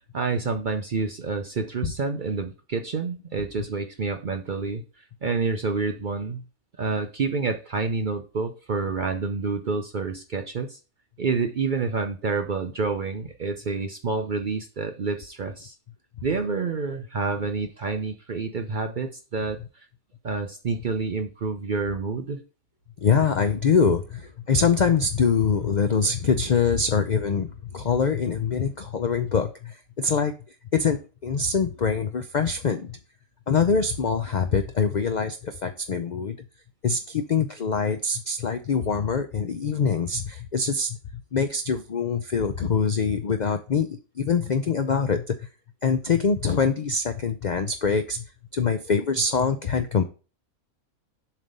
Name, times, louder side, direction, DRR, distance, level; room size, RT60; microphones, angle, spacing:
voice 1, 0.1-6.4 6.8-10.8 11.2-15.7 16.2-19.9 20.2-22.4, right 4 dB, 50° right, 6 dB, 0.6 m, -28 dB
voice 2, 23.0-30.3 30.7-32.9 33.5-36.5 36.8-45.5 45.8-48.2 48.5-50.0, left 5 dB, 75° left, 8 dB, 0.4 m, -24 dB
7.3 x 3.4 x 5.3 m, 0.33 s
omnidirectional pair, 1.5 m